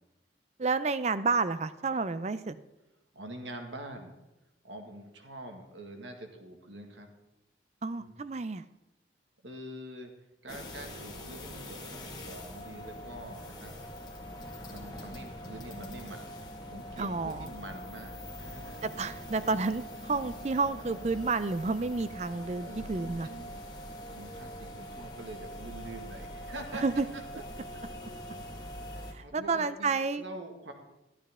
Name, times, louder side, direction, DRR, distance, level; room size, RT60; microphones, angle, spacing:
voice 1, 0.6-2.6 7.8-8.6 17.0-17.5 18.8-23.3 26.8-27.1 29.1-30.2, right 4 dB, 35° right, 14 dB, 0.5 m, -30 dB
voice 2, 3.1-4.2 4.6-7.1 7.9-8.2 9.4-10.1 10.4-13.7 14.7-16.3 16.7-18.9 22.6-23.6 24.1-26.8 27.1-27.4 27.7-27.8 28.9-30.7, right 1 dB, 80° right, 4 dB, 1.8 m, -45 dB
sound 1, 10.5-29.1, equal, 20° left, 1.6 m, -43 dB
13.5 x 12.0 x 3.7 m, 0.96 s
head